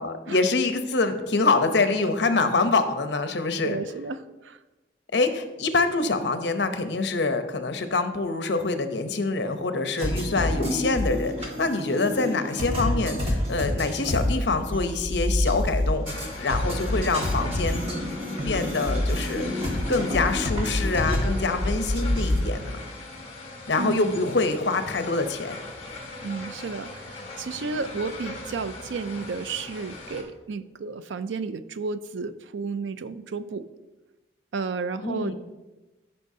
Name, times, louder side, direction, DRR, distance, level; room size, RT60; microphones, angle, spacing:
voice 1, 0.0-3.8 5.1-17.9 18.4-22.8 23.7-25.6 35.0-35.3, left 3 dB, 70° left, 8 dB, 0.7 m, -25 dB
voice 2, 3.6-4.6 23.8-24.2 26.2-33.7 34.5-35.3, right 4 dB, 80° right, 13 dB, 0.4 m, -32 dB
sound 1, 10.0-22.4, left 1 dB, 35° right, 1.4 m, -27 dB
sound 2, 16.0-30.2, left 2 dB, 30° left, 1.5 m, -40 dB
14.0 x 5.6 x 2.7 m, 1.1 s
head